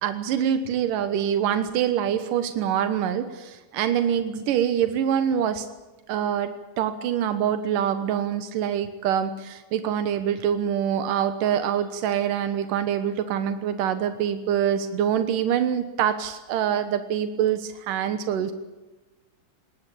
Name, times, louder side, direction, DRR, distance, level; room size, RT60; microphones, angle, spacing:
voice 1, 0.0-5.7 6.1-18.5, right 9 dB, 85° right, 9 dB, 2.8 m, -25 dB
21.0 x 19.0 x 8.5 m, 1.2 s
omnidirectional pair, 3.7 m